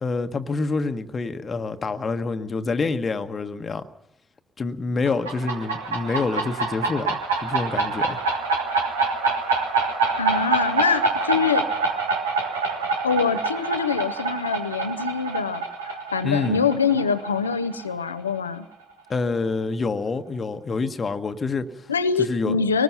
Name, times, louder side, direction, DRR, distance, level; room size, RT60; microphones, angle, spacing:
voice 1, 0.0-3.9 4.6-8.2 16.2-16.7 19.1-21.9 22.2-22.6, left 4 dB, 40° left, 9 dB, 1.3 m, -27 dB
sound 1, 5.1-18.4, right 3 dB, 80° right, 1.6 m, -26 dB
voice 2, 10.2-11.7 13.0-18.7 21.9-22.8, left 5 dB, 85° left, 12 dB, 0.8 m, -24 dB
23.0 x 20.0 x 5.7 m, 0.80 s
figure-of-eight pair, 40°, 0 cm